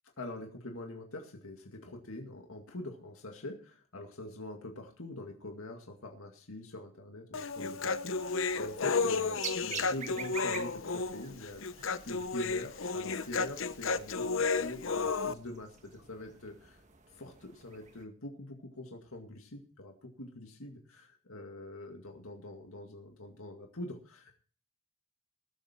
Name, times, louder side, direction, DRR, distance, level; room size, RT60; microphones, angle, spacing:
voice 1, 0.2-16.8 17.1-24.3, left 1 dB, 85° left, 3 dB, 2.1 m, -44 dB
Human voice, 7.3-15.3, left 4 dB, 65° left, 0.8 m, -32 dB
sound 1, 7.8-18.0, right 6 dB, 35° right, 1.4 m, -48 dB
19.5 x 8.0 x 4.4 m, 0.42 s
head